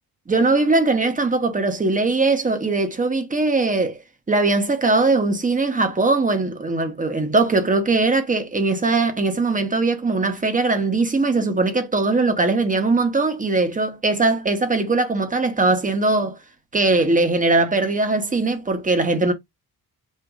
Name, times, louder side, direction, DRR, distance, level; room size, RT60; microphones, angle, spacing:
voice 1, 0.3-4.0 4.3-16.4 16.7-19.3, right 3 dB, 20° right, 0.9 m, -20 dB
6.4 x 2.5 x 2.3 m
cardioid pair, 105°, 39 cm